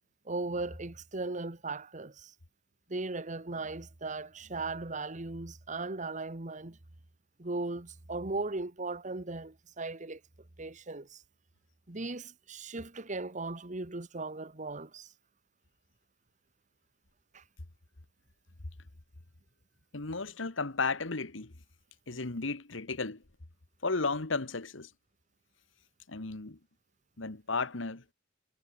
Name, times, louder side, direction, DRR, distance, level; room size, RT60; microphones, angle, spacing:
voice 1, 0.2-2.3 2.9-6.8 7.4-10.2 10.6-11.2 11.9-15.1 17.3-17.4, right 3 dB, 40° right, 1.4 m, -37 dB
voice 2, 19.9-21.5 22.1-23.2 23.8-24.9 26.1-26.6 27.2-28.0, left 3 dB, 80° left, 1.7 m, -34 dB
head